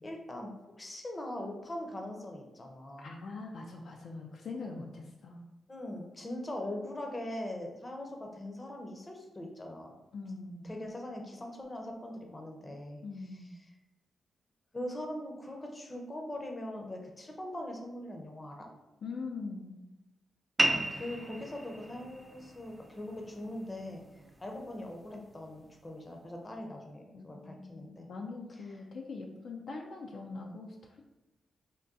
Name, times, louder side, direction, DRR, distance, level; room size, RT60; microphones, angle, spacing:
voice 1, 0.0-3.1 5.7-9.9 10.6-13.0 14.7-18.7 20.6-28.1, left 1 dB, 25° left, 2 dB, 0.6 m, -41 dB
voice 2, 3.0-5.4 10.1-10.7 13.0-13.5 19.0-19.8 27.1-31.0, left 3 dB, 65° left, 1 dB, 0.3 m, -42 dB
sound 1, 20.6-25.6, right 1 dB, 20° right, 0.3 m, -36 dB
3.6 x 2.2 x 2.6 m, 0.99 s
cardioid pair, 75°, 0 cm